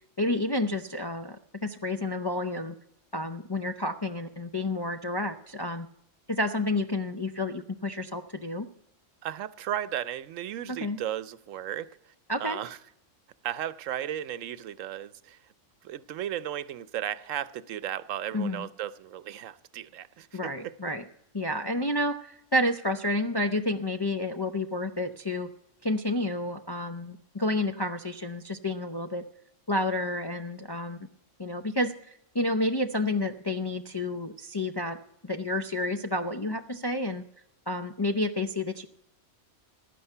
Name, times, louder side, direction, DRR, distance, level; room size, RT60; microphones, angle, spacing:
voice 1, 0.2-2.7 3.1-5.9 6.3-8.7 10.7-11.0 12.3-12.6 18.3-18.7 20.3-21.0 21.3-25.5 25.8-29.2 29.7-31.0 31.4-37.2 37.7-38.9, left 1 dB, 35° left, 0.4 m, -30 dB
voice 2, 9.2-12.1 12.4-12.8 13.4-15.4 15.8-20.7, right 11 dB, 85° right, 1.0 m, -35 dB
15.5 x 11.0 x 5.5 m
omnidirectional pair, 1.3 m